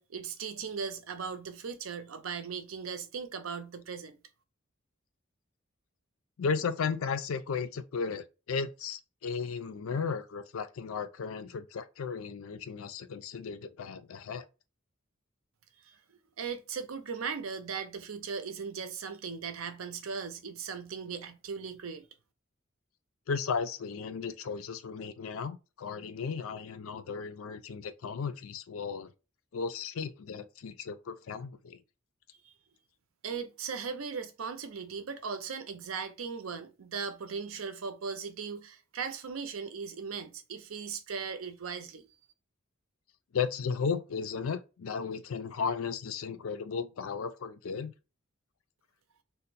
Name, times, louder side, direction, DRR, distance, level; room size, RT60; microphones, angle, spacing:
voice 1, 0.0-4.2 15.8-16.0 16.4-22.1 32.4-32.5 33.2-42.1, right 5 dB, 90° right, 0.6 m, -38 dB
voice 2, 6.4-14.4 23.3-29.1 29.5-31.8 43.3-47.9, left 5 dB, 80° left, 0.4 m, -35 dB
2.6 x 2.1 x 4.0 m
head